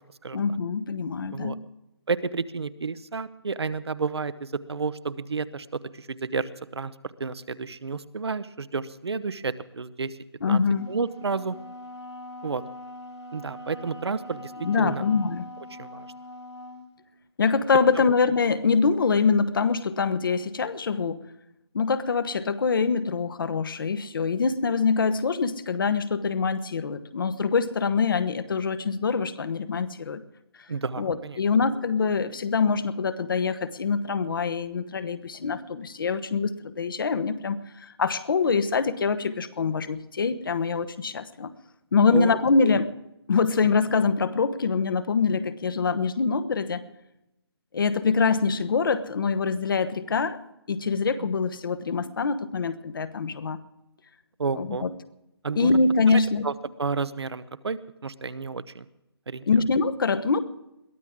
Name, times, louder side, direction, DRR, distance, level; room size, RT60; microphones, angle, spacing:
voice 1, 0.3-1.7 10.4-10.9 14.6-15.5 17.4-21.2 21.7-30.2 31.0-41.5 41.9-42.9 43.3-46.8 47.7-50.4 50.7-53.6 54.5-54.9 55.5-56.5 59.5-60.4, left 5 dB, 50° left, 12 dB, 1.1 m, -24 dB
voice 2, 2.1-10.2 10.4-10.6 10.9-11.6 12.4-12.6 13.3-14.5 14.8-15.0 15.7-16.1 18.0-18.1 30.7-31.4 42.1-42.4 42.6-42.8 54.4-54.9 55.4-55.7 56.1-56.5 56.8-58.8 59.3-59.4, right 4 dB, 70° right, 15 dB, 0.9 m, -31 dB
Wind instrument woodwind instrument, 10.6-16.9, left 1 dB, 85° left, 4.2 m, -42 dB
22.0 x 14.5 x 3.7 m, 0.89 s
figure-of-eight pair, 155°, 14 cm